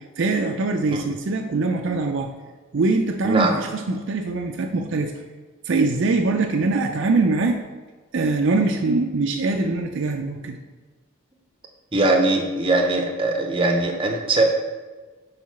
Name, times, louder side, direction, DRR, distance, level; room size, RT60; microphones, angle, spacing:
voice 1, 0.2-2.3 2.7-5.1 5.7-7.6 8.1-10.6, right 3 dB, 55° right, 3 dB, 0.4 m, -22 dB
voice 2, 11.9-14.4, right 2 dB, 25° right, 2 dB, 0.7 m, -21 dB
4.8 x 4.6 x 5.7 m, 1.3 s
head